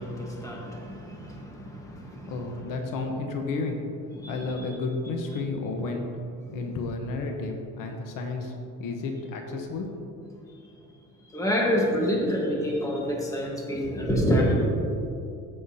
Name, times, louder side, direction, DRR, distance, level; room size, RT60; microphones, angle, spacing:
voice 1, 0.0-2.3 4.2-4.3 6.5-6.6 11.3-14.7, equal, 10° left, -2 dB, 1.3 m, -27 dB
voice 2, 2.3-3.8 4.3-6.1 6.5-9.9, left 3 dB, 85° left, 3 dB, 1.1 m, -32 dB
14.5 x 5.8 x 2.8 m, 2.5 s
cardioid pair, 150°, 32 cm